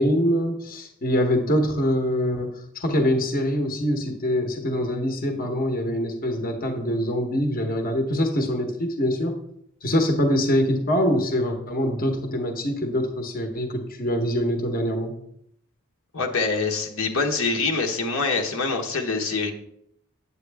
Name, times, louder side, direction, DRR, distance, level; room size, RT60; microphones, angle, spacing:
voice 1, 0.0-9.4 9.8-15.1, equal, 45° left, 4 dB, 1.1 m, -24 dB
voice 2, 16.1-19.5, left 4 dB, 75° left, 2 dB, 1.1 m, -25 dB
9.0 x 8.3 x 3.4 m, 0.71 s
head